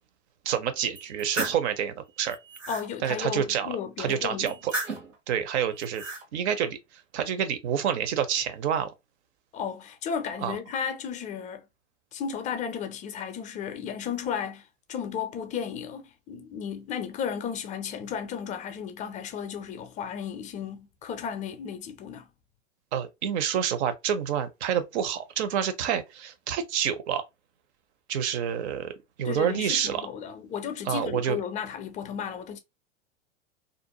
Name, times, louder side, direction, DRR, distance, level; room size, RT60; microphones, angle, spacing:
voice 1, 0.4-2.4 3.0-4.7 5.3-6.0 6.3-6.8 7.1-8.9 10.4-10.6 22.9-27.2 28.1-28.9 29.2-30.0 30.9-31.4, right 8 dB, 60° right, 0.7 m, -28 dB
sound 1, 0.9-1.6 2.2-2.9 4.5-5.2 5.7-6.2, right 2 dB, 85° right, 1.1 m, -34 dB
voice 2, 2.7-4.6 9.5-11.6 12.1-14.6 14.9-22.3 29.2-32.6, left 7 dB, 20° left, 0.4 m, -34 dB
2.5 x 2.0 x 2.8 m
hypercardioid pair, 105°, 37 cm